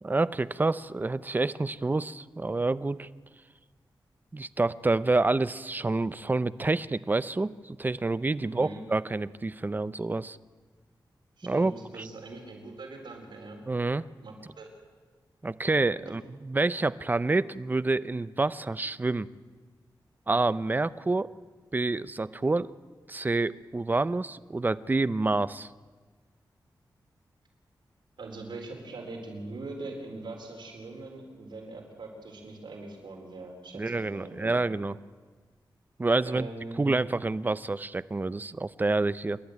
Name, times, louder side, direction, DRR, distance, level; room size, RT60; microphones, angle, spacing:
voice 1, 0.0-3.1 4.3-10.4 11.4-12.0 13.7-14.0 15.4-19.3 20.3-21.3 21.7-22.7 23.1-25.7 33.7-34.9 36.0-36.5 36.8-39.4, right 3 dB, 25° right, 16 dB, 0.6 m, -28 dB
voice 2, 8.4-8.8 11.4-13.6 14.2-14.7 28.2-34.8 36.2-36.9, right 2 dB, 85° right, 2 dB, 4.3 m, -42 dB
27.5 x 12.0 x 9.4 m, 1.4 s
wide cardioid pair, 120°, 8 cm